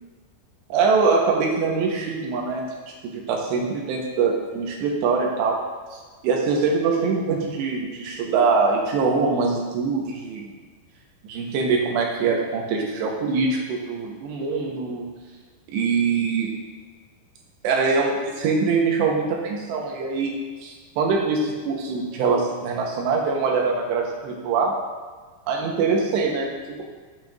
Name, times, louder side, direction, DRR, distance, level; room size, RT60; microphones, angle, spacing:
voice 1, 0.7-2.7 3.1-5.6 5.9-10.5 11.2-15.1 15.7-16.5 17.6-20.3 20.6-24.7 25.5-26.5, right 4 dB, 75° right, -1 dB, 2.9 m, -23 dB
8.7 x 8.0 x 2.5 m, 1.5 s
omnidirectional pair, 5.4 m